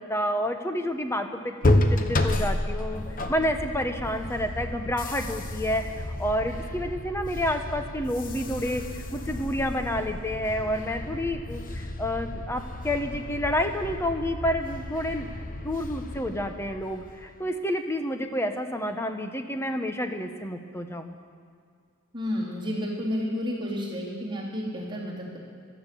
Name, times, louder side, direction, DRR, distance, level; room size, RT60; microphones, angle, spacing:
voice 1, 0.0-3.0 3.3-15.3 15.6-21.2, left 1 dB, 10° left, 6 dB, 1.0 m, -29 dB
sound 1, 1.6-17.3, left 1 dB, 40° left, 1.0 m, -31 dB
voice 2, 22.1-25.4, left 1 dB, 25° right, -6 dB, 3.7 m, -31 dB
16.5 x 12.0 x 7.0 m, 2.1 s
head